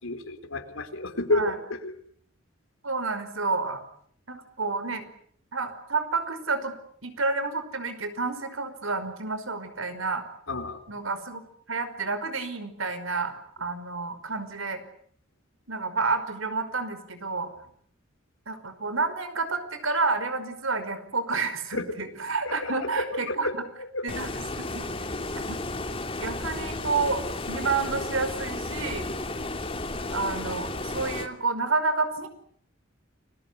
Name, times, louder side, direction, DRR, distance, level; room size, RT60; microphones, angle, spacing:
voice 1, 0.0-1.9 10.5-10.8 21.7-21.8 22.5-23.5 23.8-24.1, left 2 dB, 90° left, 8 dB, 4.0 m, -30 dB
voice 2, 2.8-3.8 4.3-5.1 5.5-6.7 7.0-10.2 10.9-11.4 11.7-13.3 13.6-14.8 15.7-17.5 18.5-23.6 24.0-24.9 25.5-25.6 26.2-29.1 30.1-32.3, right 4 dB, 90° right, 10 dB, 5.4 m, -29 dB
Stream, 24.1-31.3, left 2 dB, 30° left, 2.9 m, -33 dB
30.0 x 21.5 x 8.3 m, 0.63 s
head